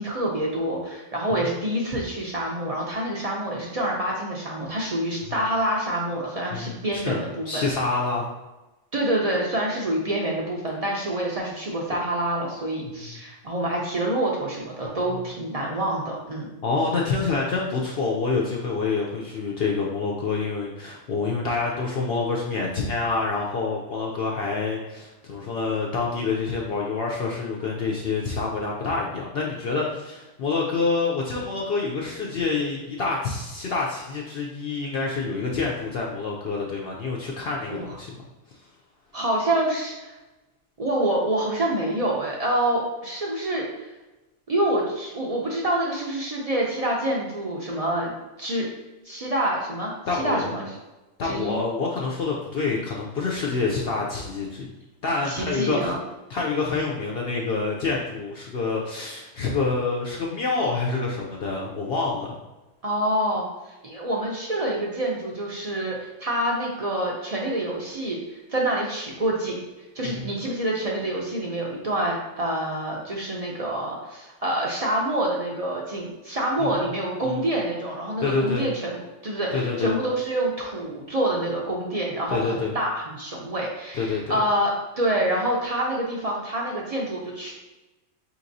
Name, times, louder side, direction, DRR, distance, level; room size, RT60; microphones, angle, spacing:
voice 1, 0.0-7.6 8.9-16.5 37.7-38.0 39.1-40.1 40.8-43.9 44.5-48.1 48.4-48.7 49.0-50.8 51.2-51.6 55.2-56.0 62.8-69.6 69.9-79.0 79.2-87.5, right 1 dB, 55° right, -2 dB, 0.4 m, -27 dB
voice 2, 6.5-7.2 7.5-8.2 13.0-13.2 16.6-38.2 50.1-50.5 51.2-54.7 55.0-55.9 56.3-62.4 70.0-70.3 76.6-76.8 78.2-78.7 79.5-79.9 82.3-82.7 84.0-84.4, left 4 dB, 65° left, -2 dB, 0.6 m, -27 dB
5.1 x 2.9 x 2.6 m, 1.1 s
omnidirectional pair, 1.4 m